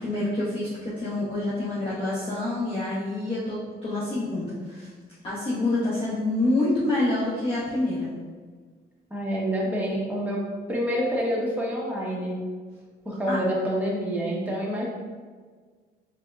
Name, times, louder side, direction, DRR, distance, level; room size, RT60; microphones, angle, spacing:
voice 1, 0.0-4.9 5.2-8.1 13.3-13.4, left 2 dB, 30° left, -9 dB, 0.9 m, -27 dB
voice 2, 9.1-12.4 13.0-14.8, equal, 10° right, -4 dB, 1.0 m, -27 dB
3.5 x 3.4 x 2.4 m, 1.5 s
cardioid pair, 90°, 20 cm